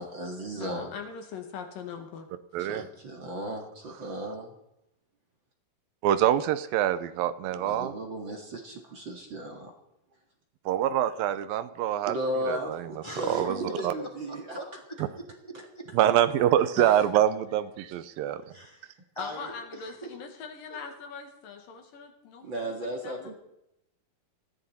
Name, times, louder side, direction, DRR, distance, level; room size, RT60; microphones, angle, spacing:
voice 1, 0.0-0.9 2.6-4.5 7.5-9.7 12.1-14.6 22.4-23.3, equal, 40° right, 1 dB, 2.1 m, -35 dB
voice 2, 0.6-2.3 2.5-2.6 16.8-17.1 19.2-23.3, left 6 dB, 70° left, 4 dB, 3.4 m, -42 dB
voice 3, 2.5-2.9 6.0-7.9 10.7-12.2 12.5-12.9 13.2-13.6 13.8-13.9 15.9-18.4, right 11 dB, 80° right, 12 dB, 2.5 m, -25 dB
voice 4, 13.0-15.9 18.5-20.1 20.7-20.8, equal, 10° left, 0 dB, 2.1 m, -42 dB
19.5 x 14.5 x 4.3 m, 0.82 s
omnidirectional pair, 4.1 m